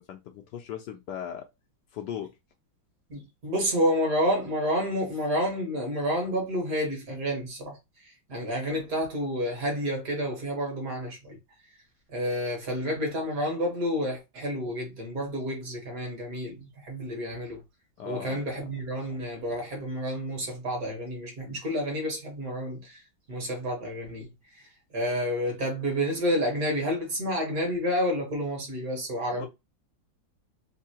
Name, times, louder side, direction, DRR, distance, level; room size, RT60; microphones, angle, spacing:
voice 1, 0.0-1.5 1.9-2.3 18.0-18.6 29.3-29.5, left 9 dB, 70° left, 1.1 m, -38 dB
voice 2, 3.1-7.8 8.3-11.4 12.1-17.6 18.0-23.0 23.3-24.3 24.9-29.5, equal, 50° right, 1.6 m, -29 dB
3.6 x 2.7 x 2.8 m
omnidirectional pair, 2.1 m